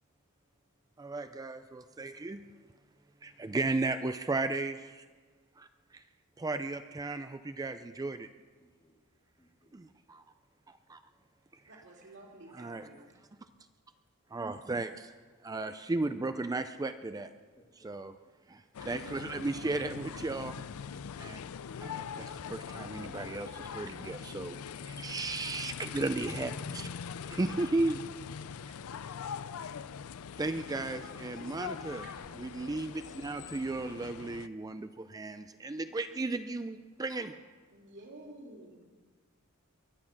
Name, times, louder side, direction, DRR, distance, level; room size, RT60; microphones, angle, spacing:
voice 1, 1.0-2.4 3.2-5.1 5.6-6.0 6.4-8.3 9.7-10.2 10.7-11.0 12.6-12.9 14.3-15.1 15.4-17.3 17.8-18.1 18.5-20.6 21.2-21.4 21.8-26.9 27.3-28.0 28.7-28.8 30.4-32.0 32.4-37.3, right 2 dB, 15° right, 0.4 m, -35 dB
voice 2, 8.6-9.0 9.4-9.8 13.2-13.5 17.2-18.3, left 1 dB, 20° left, 1.7 m, -67 dB
voice 3, 11.6-13.2 31.8-32.3 37.1-37.3 37.7-38.9, right 1 dB, 55° right, 3.2 m, -52 dB
sound 1, 18.7-34.5, left 7 dB, 70° left, 0.4 m, -42 dB
22.5 x 8.6 x 6.1 m
head